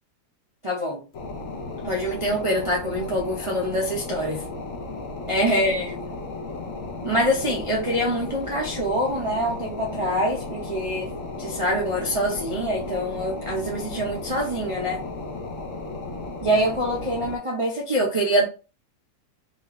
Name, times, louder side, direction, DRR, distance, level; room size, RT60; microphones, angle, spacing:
voice 1, 0.6-1.1 1.8-4.4 5.3-6.0 7.0-11.1 11.4-15.0 16.4-18.5, equal, 55° right, 0.3 m, -25 dB
sound 1, 1.1-17.4, left 3 dB, 60° left, 0.9 m, -35 dB
4.3 x 2.5 x 3.0 m
omnidirectional pair, 2.0 m